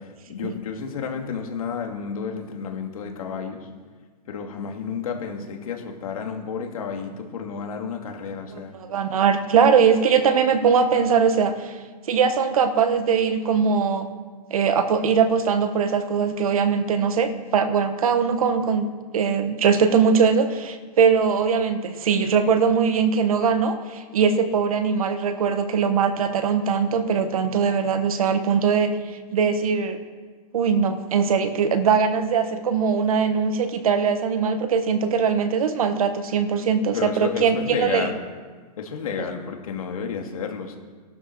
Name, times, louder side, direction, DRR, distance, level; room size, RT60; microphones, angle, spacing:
voice 1, 0.0-3.7 4.3-8.7 36.9-38.2 38.8-40.8, left 6 dB, 55° left, 3 dB, 2.4 m, -31 dB
voice 2, 8.5-11.8 12.1-14.1 14.5-28.9 29.3-30.0 30.5-38.1 39.2-39.3, right 6 dB, 55° right, 9 dB, 1.3 m, -21 dB
17.5 x 12.0 x 4.7 m, 1.5 s
hypercardioid pair, 175°, 21 cm